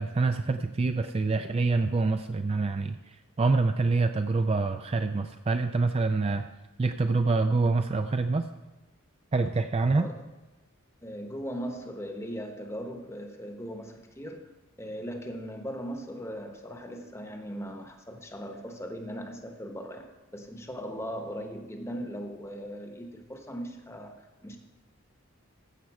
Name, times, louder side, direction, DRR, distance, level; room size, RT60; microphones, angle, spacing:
voice 1, 0.0-6.5 6.8-8.5 9.3-10.1, right 3 dB, 30° right, 8 dB, 0.3 m, -26 dB
voice 2, 11.0-24.6, equal, 15° left, 4 dB, 1.0 m, -39 dB
15.0 x 6.8 x 4.7 m, 1.2 s
head